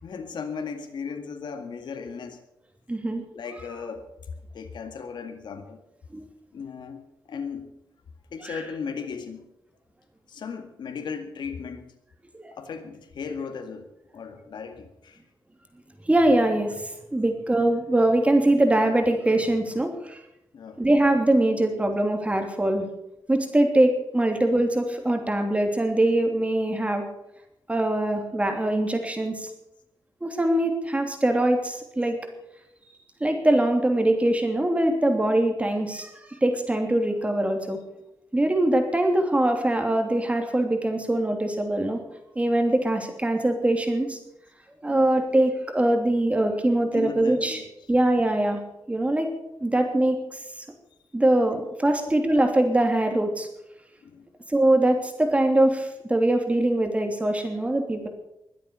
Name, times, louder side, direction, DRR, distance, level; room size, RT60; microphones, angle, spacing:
voice 1, 0.0-2.4 3.3-4.0 4.5-5.8 6.5-7.7 8.3-9.5 10.3-11.9 12.5-13.9 14.1-15.2 20.5-20.9 44.8-45.1 46.9-47.7 52.0-52.1 54.0-54.3, left 5 dB, 80° left, 6 dB, 2.1 m, -36 dB
voice 2, 2.9-3.2 6.1-6.2 8.4-8.6 12.3-12.5 16.1-20.2 20.8-22.9 23.3-27.0 27.7-29.5 30.2-32.2 33.2-37.8 38.3-42.0 42.3-44.2 44.8-47.6 47.9-48.6 48.9-49.3 49.6-50.2 51.1-53.5 54.5-58.1, right 1 dB, 15° right, 4 dB, 3.0 m, -22 dB
22.5 x 8.3 x 7.0 m, 0.84 s
wide cardioid pair, 110°, 8 cm